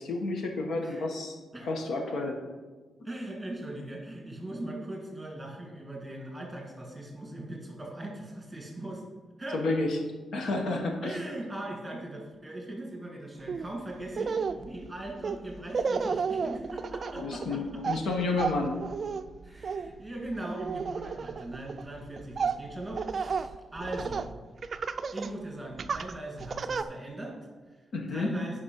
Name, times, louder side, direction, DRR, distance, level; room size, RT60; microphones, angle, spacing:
voice 1, 0.0-1.3 1.6-2.4 9.5-10.0 10.3-11.2 17.2-18.8 27.9-28.3, left 3 dB, 75° left, 2 dB, 1.3 m, -30 dB
voice 2, 3.0-9.0 9.4-9.6 11.0-18.0 19.4-24.3 25.1-27.8 28.1-28.6, right 1 dB, 10° right, 0 dB, 2.0 m, -40 dB
Laughter, 13.5-13.7 14.1-24.3 24.6-25.3 25.8-26.8, right 5 dB, 45° right, 0.4 m, -33 dB
10.0 x 5.3 x 5.4 m, 1.3 s
wide cardioid pair, 140°, 0 cm